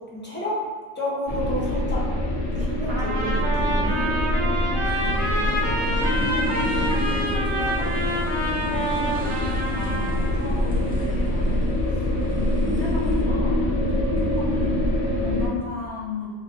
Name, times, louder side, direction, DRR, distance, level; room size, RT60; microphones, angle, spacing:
voice 1, 0.1-0.6 1.0-2.0 2.5-4.0, equal, 10° left, -7 dB, 0.8 m, -30 dB
sound 1, 1.3-15.5, left 1 dB, 70° left, 0.9 m, -24 dB
Trumpet, 2.9-10.3, right 1 dB, 70° right, 1.3 m, -28 dB
sound 2, 4.8-13.2, equal, 15° right, 0.4 m, -43 dB
voice 2, 5.0-16.3, left 3 dB, 25° left, -7 dB, 1.0 m, -37 dB
3.1 x 2.4 x 3.8 m, 1.5 s
omnidirectional pair, 1.2 m